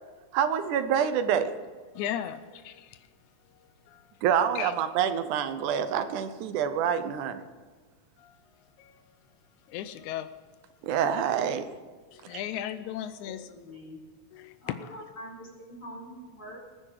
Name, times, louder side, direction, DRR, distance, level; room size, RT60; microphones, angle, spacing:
voice 1, 0.3-1.6 4.2-7.4 10.8-11.7 12.3-12.4, right 8 dB, 90° right, 10 dB, 2.4 m, -27 dB
voice 2, 2.0-3.1 3.5-4.1 4.6-4.7 8.2-8.4 8.8-9.2 9.7-10.3 12.1-13.5 14.3-15.0, left 11 dB, 80° left, 11 dB, 2.0 m, -37 dB
voice 3, 13.4-14.0 14.6-16.6, equal, 35° left, -2 dB, 4.7 m, -44 dB
20.5 x 9.8 x 4.9 m, 1.5 s
omnidirectional pair, 3.4 m